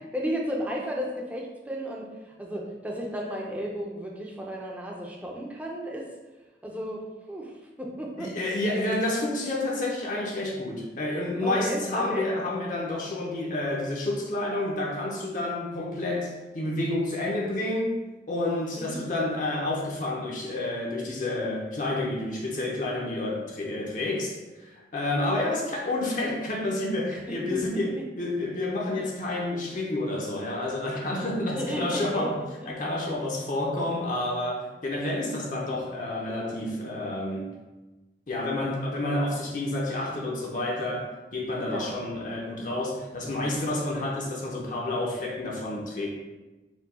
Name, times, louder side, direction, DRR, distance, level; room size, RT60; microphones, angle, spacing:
voice 1, 0.1-6.1 6.6-8.3 11.4-12.2 18.8-19.0 27.3-27.6 31.6-32.3 41.7-41.9, equal, 10° right, -2 dB, 0.5 m, -33 dB
voice 2, 8.2-18.0 18.3-32.4 32.7-37.5 38.3-46.1, left 1 dB, 45° left, -2 dB, 0.6 m, -29 dB
4.4 x 2.3 x 4.1 m, 1.1 s
head